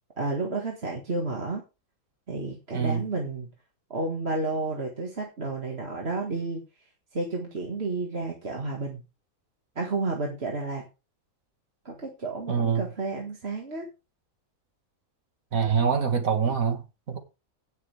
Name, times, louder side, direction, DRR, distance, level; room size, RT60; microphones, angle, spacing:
voice 1, 0.2-1.6 2.3-3.5 3.9-6.6 7.1-9.0 9.8-10.9 11.9-13.9, right 3 dB, 45° right, 2.1 m, -31 dB
voice 2, 12.5-12.8 15.5-17.2, right 6 dB, 70° right, 2.3 m, -25 dB
17.0 x 6.8 x 3.5 m
omnidirectional pair, 1.5 m